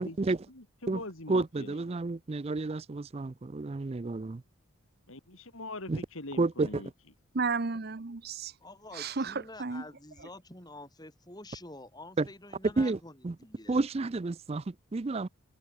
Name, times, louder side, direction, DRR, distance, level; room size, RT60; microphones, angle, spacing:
voice 1, 0.0-0.5 0.9-1.0 1.3-4.4 5.9-6.0 6.4-6.8 12.2-12.3 12.6-13.0 13.2-13.4 13.7-15.3, right 3 dB, 30° right, 0.4 m, -30 dB
voice 2, 0.8-1.8 5.1-6.9, left 2 dB, 75° left, 3.3 m, -42 dB
voice 3, 7.3-8.5 8.9-9.8, right 4 dB, 45° right, 0.8 m, -33 dB
voice 4, 8.6-13.8, left 2 dB, 20° left, 3.6 m, -48 dB
head